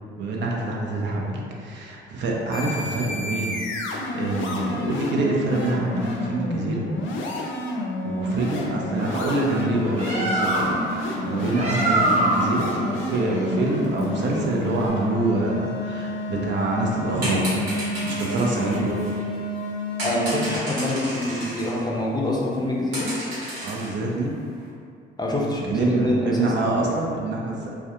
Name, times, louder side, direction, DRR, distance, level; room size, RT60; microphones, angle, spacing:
voice 1, 0.2-3.6 4.1-6.8 8.0-17.7 18.0-19.1 23.6-24.4 25.7-27.6, right 2 dB, 65° right, -2 dB, 0.5 m, -26 dB
sound 1, 2.5-20.6, left 1 dB, 80° left, 0.4 m, -30 dB
Bird, 9.7-14.9, right 1 dB, 35° right, 0.7 m, -26 dB
sound 2, 17.1-19.4 20.0-21.8 22.1-22.2 22.6-22.7 22.9-24.0 24.4-24.6, right 1 dB, 90° right, 1.0 m, -33 dB
voice 2, 20.0-23.1 25.2-26.5, left 1 dB, 20° left, -4 dB, 0.4 m, -25 dB
2.3 x 2.1 x 2.8 m, 2.3 s
cardioid pair, 90°, 20 cm